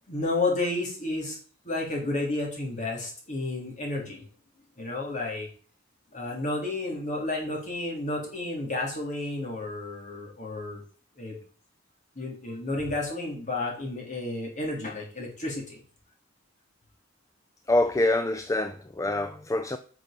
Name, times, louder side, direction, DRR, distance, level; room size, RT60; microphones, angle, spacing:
voice 1, 0.1-1.4 1.6-4.3 4.8-5.5 6.1-10.8 11.2-11.4 12.2-15.8, left 2 dB, 35° left, 3.7 m, -31 dB
voice 2, 17.7-19.8, left 1 dB, 15° left, 0.5 m, -25 dB
11.5 x 6.1 x 5.3 m
head